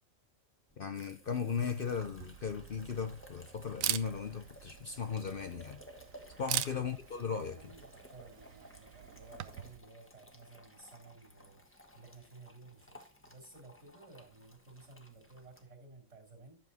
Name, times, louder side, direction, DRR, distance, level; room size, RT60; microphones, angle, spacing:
sound 1, 0.7-15.6, left 1 dB, 10° left, 1.4 m, -57 dB
voice 1, 0.8-5.8 6.4-7.6, left 6 dB, 50° left, 0.8 m, -37 dB
Camera, 1.5-9.8, right 12 dB, 85° right, 1.1 m, -42 dB
voice 2, 7.5-16.6, right 3 dB, 60° right, 3.2 m, -55 dB
11.0 x 7.1 x 4.0 m
omnidirectional pair, 1.4 m